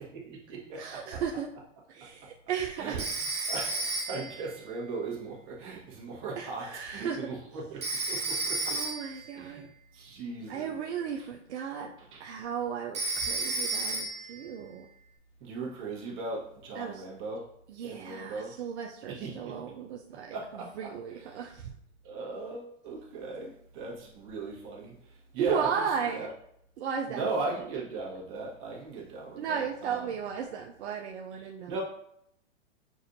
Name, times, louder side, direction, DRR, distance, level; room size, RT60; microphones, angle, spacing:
voice 1, 0.3-1.2 2.8-3.1 3.4-7.8 8.1-8.9 9.3-9.6 9.9-10.8 12.1-12.3 15.4-17.5 17.8-18.6 19.1-19.5 20.3-20.9 21.2-21.3 22.0-25.9 26.1-26.3 27.1-30.1 31.4-31.8, right 3 dB, 35° right, 1.3 m, -38 dB
voice 2, 0.8-1.5 1.9-3.0 3.8-3.9 6.4-7.2 8.6-9.7 10.5-14.9 16.8-17.0 17.7-20.4 20.8-21.7 25.4-26.3 26.8-27.5 29.4-31.8, right 7 dB, 65° right, 0.6 m, -35 dB
Telephone, 3.0-4.4 7.8-9.2 12.9-14.4, right 2 dB, 20° right, 0.8 m, -32 dB
6.2 x 2.5 x 2.6 m
hypercardioid pair, 125°, 36 cm